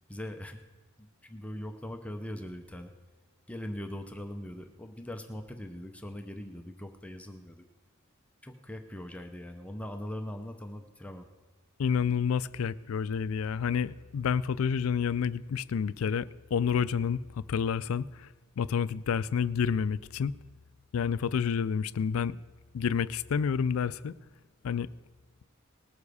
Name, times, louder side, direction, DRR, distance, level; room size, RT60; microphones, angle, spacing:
voice 1, 0.1-0.6 1.0-2.9 3.5-7.6 8.4-11.3, left 1 dB, 5° left, 0.6 m, -41 dB
voice 2, 11.8-18.3 18.6-20.4 20.9-22.4 22.7-24.1 24.6-24.9, left 7 dB, 75° left, 0.4 m, -29 dB
19.5 x 7.1 x 4.8 m
head